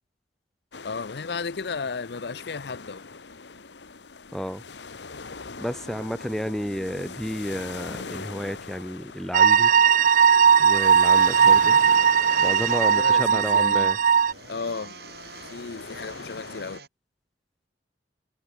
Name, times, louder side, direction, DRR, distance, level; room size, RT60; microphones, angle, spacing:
sound 1, 0.7-16.8, left 4 dB, 85° left, 1.2 m, -41 dB
voice 1, 0.8-3.0 12.8-13.9 14.5-14.9 15.5-16.8, left 4 dB, 65° left, 0.6 m, -34 dB
voice 2, 4.3-4.6 5.6-9.7 10.6-11.8 12.4-14.0, equal, ahead, 1.6 m, -31 dB
sound 2, 5.5-5.7 6.3-6.4 7.2-8.0 8.8-9.3 9.9-16.9, right 5 dB, 65° right, 7.6 m, -49 dB
sound 3, 9.3-14.3, right 7 dB, 50° right, 0.4 m, -18 dB
head